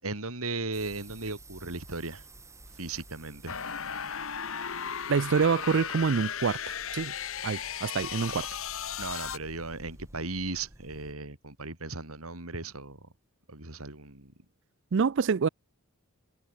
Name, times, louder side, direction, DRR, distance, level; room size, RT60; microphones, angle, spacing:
voice 1, 0.0-2.2 2.7-3.6 9.0-13.1 13.5-14.3, right 3 dB, 75° right, 4.3 m, -37 dB
sound 1, 0.7-11.1, right 2 dB, 15° right, 3.1 m, -52 dB
sound 2, 3.5-9.4, left 8 dB, 65° left, 1.3 m, -36 dB
voice 2, 5.1-6.6 6.9-7.1 7.4-8.5 14.9-15.5, right 5 dB, 55° right, 0.4 m, -26 dB
head